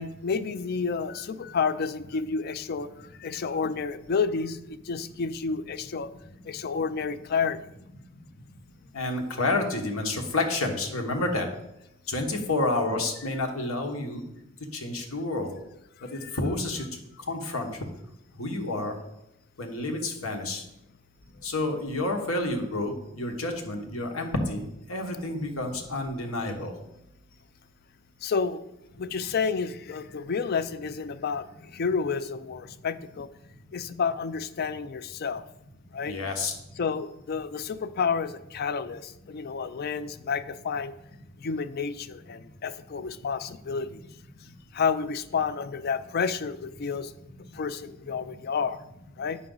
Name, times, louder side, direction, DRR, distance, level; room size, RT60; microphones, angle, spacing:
voice 1, 0.0-6.1 6.5-7.6 16.0-16.4 28.2-28.6 29.0-33.3 33.7-35.4 35.9-36.2 36.8-40.9 41.4-44.0 44.7-47.1 47.5-48.8 49.2-49.4, left 5 dB, 50° left, 13 dB, 0.4 m, -30 dB
voice 2, 8.9-11.5 12.1-14.2 14.7-15.5 16.1-16.8 17.3-17.7 18.4-18.9 19.6-20.6 21.4-26.7 36.0-36.5, left 2 dB, 85° left, 3 dB, 1.3 m, -29 dB
8.5 x 6.0 x 3.9 m, 0.84 s
head